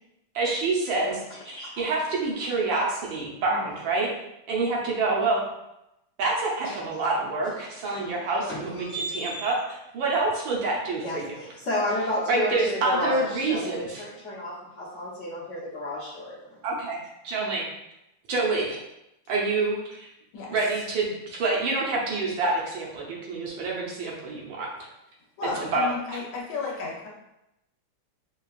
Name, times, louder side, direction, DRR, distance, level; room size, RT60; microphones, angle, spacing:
voice 1, 0.3-4.1 4.5-5.4 6.2-9.5 9.9-11.4 12.3-14.0 16.6-17.0 17.2-17.6 18.3-18.8 19.3-20.1 20.5-24.7 25.6-25.9, right 3 dB, 70° right, -3 dB, 1.4 m, -27 dB
voice 2, 1.4-1.8 3.6-3.7 6.6-6.8 7.4-7.5 7.8-8.1 8.5-9.5 11.0-16.4, left 1 dB, 45° left, -10 dB, 1.1 m, -32 dB
voice 3, 25.4-27.1, left 3 dB, 75° left, -3 dB, 1.5 m, -33 dB
4.6 x 2.3 x 2.4 m, 0.87 s
omnidirectional pair, 2.3 m